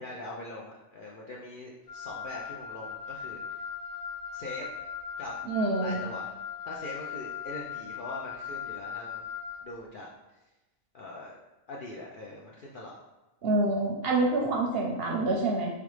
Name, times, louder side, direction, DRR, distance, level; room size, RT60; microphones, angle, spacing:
voice 1, 0.0-3.6 4.3-4.7 5.2-5.3 5.8-6.3 6.7-9.2 9.6-10.1 10.9-11.3 11.7-13.0, left 2 dB, 60° left, -4 dB, 0.5 m, -42 dB
Wind instrument woodwind instrument, 1.9-9.6, left 8 dB, 75° left, 1.5 m, -39 dB
voice 2, 5.5-6.0 13.4-15.7, right 2 dB, 60° right, 0 dB, 0.7 m, -27 dB
3.6 x 3.3 x 3.1 m, 1.0 s
omnidirectional pair, 1.4 m